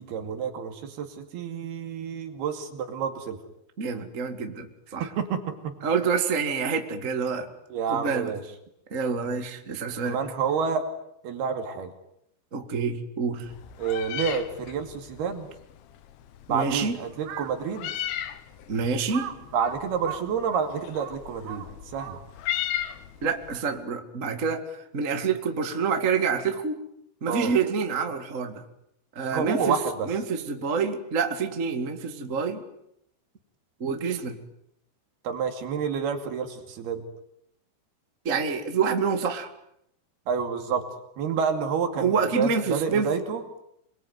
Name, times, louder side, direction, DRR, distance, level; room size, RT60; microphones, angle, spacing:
voice 1, 0.0-3.4 5.0-5.7 7.7-8.4 10.0-10.8 11.2-11.9 13.8-15.5 16.5-17.9 19.5-21.7 21.9-22.2 27.3-27.5 29.3-30.1 35.2-37.0 40.3-40.8 41.2-43.4, right 6 dB, 60° right, 7 dB, 4.2 m, -29 dB
voice 2, 3.8-5.1 5.8-7.5 7.9-8.3 8.9-10.2 12.5-13.5 16.5-17.0 18.7-19.3 23.2-26.8 27.2-28.6 29.1-29.8 30.0-32.6 33.8-34.4 38.2-39.5 42.0-43.1, right 5 dB, 35° right, 6 dB, 1.2 m, -27 dB
Meow, 13.5-23.6, left 11 dB, 85° left, 3.9 m, -37 dB
Crow, 17.1-17.6 18.2-18.3 19.1-22.5, right 10 dB, 85° right, 4.0 m, -39 dB
27.5 x 22.5 x 9.5 m, 0.77 s
omnidirectional pair, 5.2 m